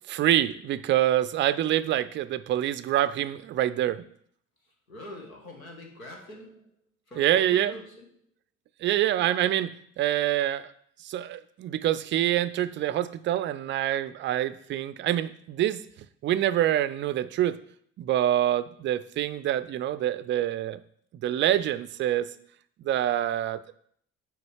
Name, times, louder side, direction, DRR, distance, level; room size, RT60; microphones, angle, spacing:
voice 1, 0.1-4.0 7.2-7.7 8.8-10.7 11.0-15.8 16.2-17.6 18.0-20.8 21.2-22.3 22.8-23.7, right 12 dB, 30° right, 14 dB, 0.4 m, -26 dB
voice 2, 4.9-6.7 7.1-8.1, left 1 dB, 85° left, 1 dB, 1.2 m, -44 dB
6.8 x 4.9 x 4.7 m, 0.64 s
figure-of-eight pair, 55°, 41 cm